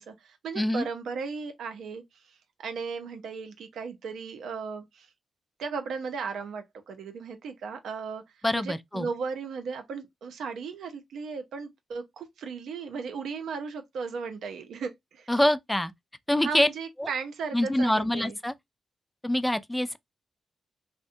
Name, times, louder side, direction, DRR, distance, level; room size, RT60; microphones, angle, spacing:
voice 1, 0.0-2.3 2.6-5.1 5.6-8.2 8.5-15.3 16.4-18.4, right 5 dB, 75° right, 0.5 m, -36 dB
voice 2, 0.6-0.9 8.4-9.1 15.3-15.9 16.3-16.7 17.0-17.1 17.5-18.5 19.2-20.0, left 1 dB, 15° left, 0.3 m, -25 dB
2.6 x 2.1 x 2.5 m
supercardioid pair, 40°, 0 cm